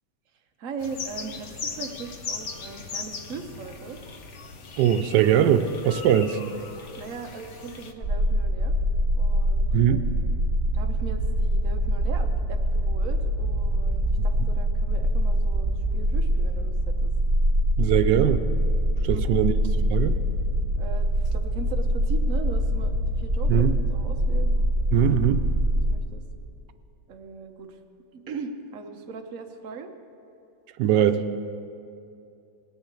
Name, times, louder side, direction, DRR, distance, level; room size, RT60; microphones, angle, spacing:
voice 1, 0.6-4.0 6.9-8.8 9.2-10.1 10.7-17.1 19.1-19.4 20.8-24.5 25.9-26.2 27.1-27.8 28.1-29.9, right 4 dB, 55° right, 4 dB, 1.3 m, -39 dB
sound 1, 0.8-7.9, left 4 dB, 50° left, 1.0 m, -38 dB
voice 2, 4.8-6.4 9.7-10.0 17.8-18.4 19.0-19.5 19.9-20.2 23.5-23.7 24.9-25.4 30.8-31.2, right 10 dB, 90° right, 9 dB, 1.2 m, -21 dB
sound 2, 8.0-26.0, equal, 15° right, 3.9 m, -24 dB
19.0 x 7.0 x 8.2 m, 2.6 s
omnidirectional pair, 1.8 m